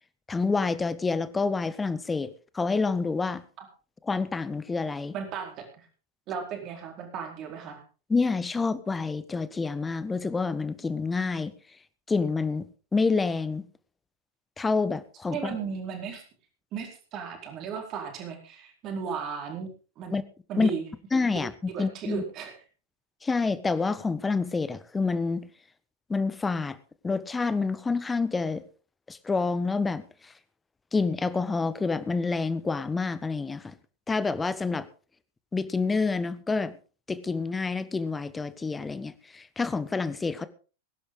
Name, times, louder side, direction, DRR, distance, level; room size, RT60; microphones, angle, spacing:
voice 1, 0.3-2.3 2.5-3.4 4.1-5.1 8.1-11.5 12.1-13.6 14.6-15.6 20.1-20.2 20.6-20.7 21.1-22.2 23.2-25.5 26.1-26.8 27.0-28.6 29.1-30.0 30.9-33.7 34.1-34.9 35.5-36.7 37.1-40.5, left 4 dB, 10° left, 1.2 m, -28 dB
voice 2, 5.1-5.6 6.3-7.8 15.3-16.2 16.7-19.7 20.0-20.1 20.5-20.9 21.3-21.4 21.7-22.6, right 6 dB, 35° right, 4.4 m, -35 dB
21.0 x 11.0 x 3.8 m
figure-of-eight pair, 90°, 0 cm